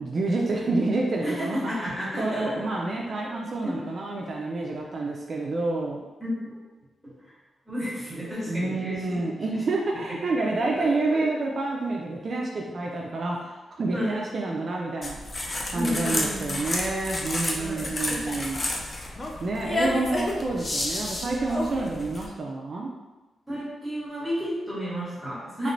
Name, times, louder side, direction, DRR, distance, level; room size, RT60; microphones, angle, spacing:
voice 1, 0.1-1.8 2.2-6.0 8.5-15.2 15.7-18.6 19.4-22.9 25.6-25.7, right 2 dB, 50° right, -2 dB, 0.3 m, -28 dB
voice 2, 1.2-2.6 3.6-3.8 6.2-6.5 7.7-9.2 9.5-9.6 10.5-11.2 13.9-14.1 15.7-16.5 17.4-17.9 23.5-25.7, equal, ahead, -9 dB, 1.3 m, -32 dB
sound 1, 15.0-22.3, left 1 dB, 30° left, 0.4 m, -30 dB
3.1 x 2.9 x 2.6 m, 1.2 s
wide cardioid pair, 135°, 0 cm